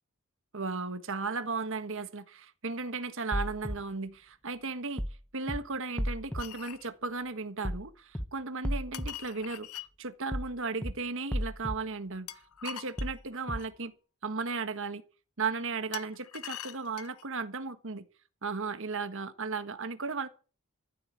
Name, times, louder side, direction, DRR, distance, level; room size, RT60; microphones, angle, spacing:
voice 1, 0.5-5.0 5.3-13.9 14.2-15.0 15.4-18.0 18.4-20.3, right 4 dB, 65° right, 1.5 m, -35 dB
sound 1, 3.3-3.7 5.0-5.2 5.5-5.6 6.0-6.4 7.6-7.8 8.1-8.2 8.6-9.1 10.3-10.5 10.8-10.9 11.3-11.7 13.0-13.2 13.5-13.6, equal, 5° left, 1.0 m, -32 dB
sound 2, 6.4-6.9 8.9-9.9 12.3-13.7 15.9-17.3, left 12 dB, 80° left, 0.9 m, -43 dB
14.5 x 7.9 x 8.5 m
head